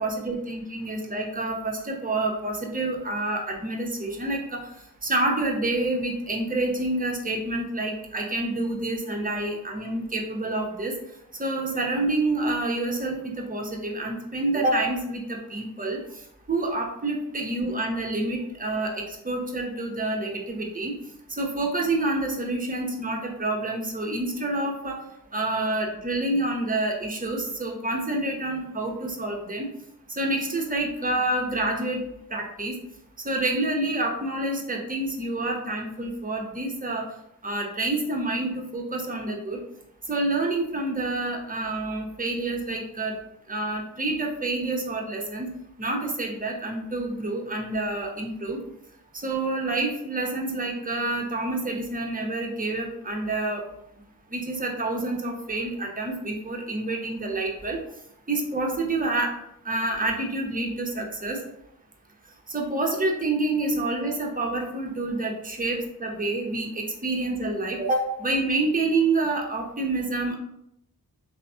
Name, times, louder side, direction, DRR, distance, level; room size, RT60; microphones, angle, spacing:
voice 1, 0.0-4.6 5.0-11.0 11.4-16.0 16.5-20.9 21.3-25.0 25.3-29.7 30.2-32.0 32.3-32.8 33.2-37.0 37.4-39.6 40.1-43.1 43.5-45.5 45.8-48.6 49.1-53.6 54.3-57.8 58.3-59.3 59.6-61.4 62.5-70.4, right 2 dB, 20° right, 0 dB, 0.7 m, -28 dB
3.2 x 2.1 x 2.6 m, 0.78 s
cardioid pair, 40°, 38 cm